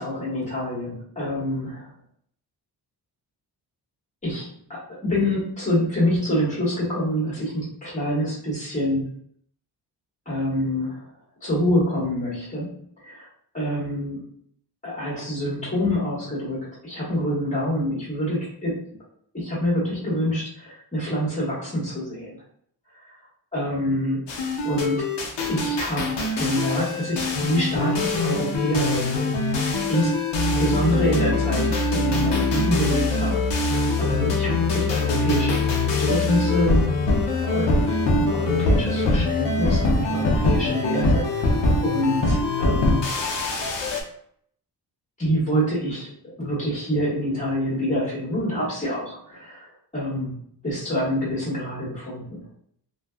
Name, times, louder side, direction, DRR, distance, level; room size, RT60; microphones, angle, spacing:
voice 1, 0.0-1.9 4.2-9.1 10.2-11.0 11.4-13.3 13.5-14.2 14.8-18.7 19.3-22.3 23.0-23.2 23.5-24.2 24.6-25.1 25.5-30.1 30.6-36.8 37.4-43.1 45.2-50.4 50.6-52.5, equal, 15° left, -7 dB, 1.4 m, -26 dB
sound 1, 24.3-44.0, left 2 dB, 85° left, 0.6 m, -23 dB
2.5 x 2.2 x 2.3 m, 0.65 s
wide cardioid pair, 155°, 41 cm